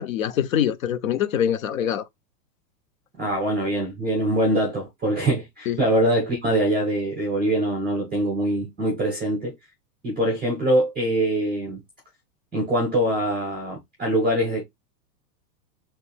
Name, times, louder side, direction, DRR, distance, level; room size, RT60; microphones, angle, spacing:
voice 1, 0.0-2.0 5.7-5.8, left 9 dB, 60° left, 0.6 m, -24 dB
voice 2, 3.2-9.5 10.0-11.8 12.5-14.6, right 1 dB, 5° right, 0.4 m, -23 dB
3.1 x 3.1 x 3.3 m
supercardioid pair, 180°, 48 cm